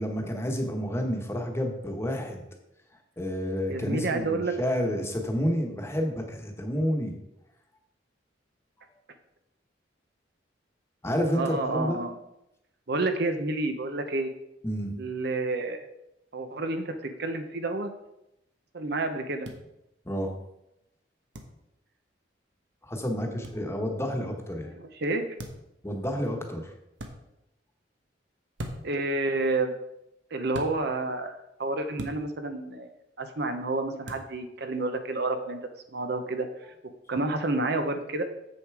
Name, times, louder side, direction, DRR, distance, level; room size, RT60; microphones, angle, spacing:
voice 1, 0.0-2.4 3.2-7.2 8.8-8.9 11.0-12.0 14.6-14.9 20.0-20.4 22.8-24.7 25.8-26.7, equal, 15° left, 2 dB, 1.2 m, -30 dB
voice 2, 3.7-4.5 11.3-12.1 12.9-14.3 15.0-15.9 16.3-17.9 18.7-19.5 25.0-25.3 28.8-29.7 30.3-31.3 31.6-32.9 33.2-35.6 35.9-36.5 37.1-38.2, right 2 dB, 60° right, 7 dB, 0.9 m, -29 dB
sound 1, 19.4-19.6 21.3-21.5 23.4-23.6 25.4-25.7 27.0-27.1 28.6-29.0 30.5-30.7 32.0-32.2 34.1-34.3, equal, 85° right, 1.2 m, -38 dB
7.6 x 6.8 x 4.8 m, 0.86 s
head